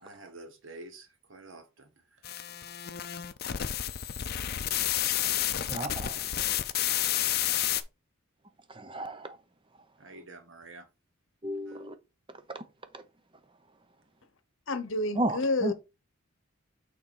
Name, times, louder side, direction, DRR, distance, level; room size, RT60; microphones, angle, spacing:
voice 1, 0.0-1.9 10.0-10.9 11.7-11.9, right 2 dB, 60° right, 1.2 m, -48 dB
sound 1, 2.2-7.8, left 12 dB, 45° left, 0.5 m, -30 dB
voice 2, 5.7-6.2 8.7-9.4 11.4-11.9 12.9-13.0 15.2-15.7, right 1 dB, 25° right, 0.7 m, -33 dB
voice 3, 14.7-15.7, left 2 dB, 60° left, 0.9 m, -29 dB
6.4 x 4.1 x 4.5 m
head